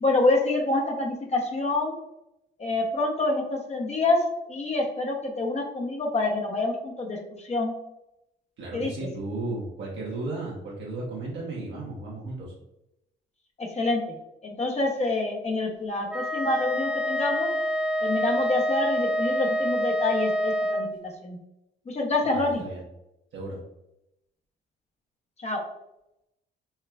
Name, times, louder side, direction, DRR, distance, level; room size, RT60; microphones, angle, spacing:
voice 1, 0.0-2.0 2.6-4.2 4.5-7.7 8.7-8.9 13.6-14.0 14.4-17.5 18.0-21.4 21.9-22.6 25.4-25.6, left 2 dB, 35° left, 0 dB, 0.7 m, -27 dB
voice 2, 8.6-12.5 22.2-22.8 23.3-23.6, right 2 dB, 70° right, -4 dB, 1.0 m, -34 dB
Wind instrument woodwind instrument, 16.1-20.9, equal, 5° right, 0.5 m, -27 dB
4.4 x 2.3 x 2.3 m, 0.86 s
cardioid pair, 90°, 20 cm